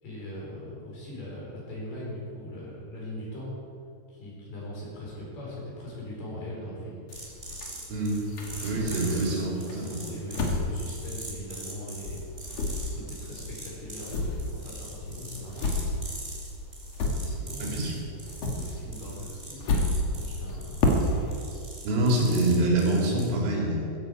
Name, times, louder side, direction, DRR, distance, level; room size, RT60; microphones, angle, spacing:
voice 1, 0.0-3.5 4.1-7.0 8.6-12.2 12.8-16.1 17.2-17.9 18.4-19.7 20.0-21.2, left 1 dB, 50° left, -5 dB, 6.1 m, -40 dB
sound 1, 7.1-9.2 9.7-11.8 12.1-17.8 18.0-21.4, left 2 dB, 75° left, 1.5 m, -31 dB
sound 2, 7.1-23.3, right 1 dB, 15° right, 1.8 m, -43 dB
voice 2, 7.9-8.2 8.6-10.0 17.6-17.9 21.9-24.0, right 1 dB, 85° right, -2 dB, 5.7 m, -25 dB
15.5 x 15.5 x 5.2 m, 2.6 s
omnidirectional pair, 5.8 m